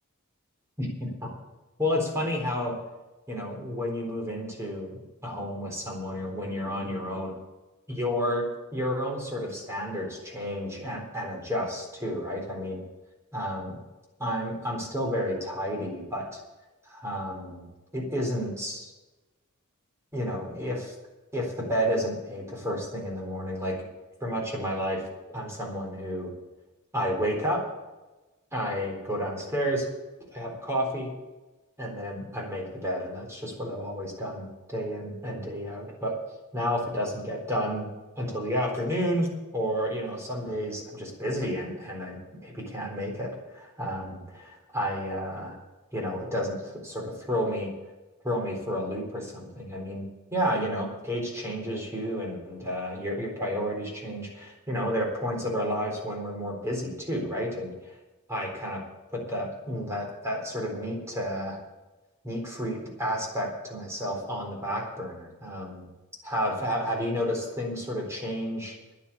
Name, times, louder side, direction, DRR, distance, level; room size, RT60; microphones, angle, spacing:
voice 1, 0.8-1.3 1.8-2.7 3.3-7.4 7.9-12.8 13.3-13.8 14.2-16.4 16.8-17.7 17.9-18.9 20.1-20.9 21.3-23.8 24.2-25.0 25.3-26.3 26.9-27.6 28.5-29.9 30.3-31.1 31.8-36.2 36.5-37.9 38.2-42.2 42.4-45.5 45.9-47.7 48.2-57.7 58.3-58.8 59.1-61.6 62.2-65.9 66.2-68.8, equal, 15° right, -1 dB, 3.9 m, -31 dB
10.5 x 9.9 x 8.6 m, 1.1 s
head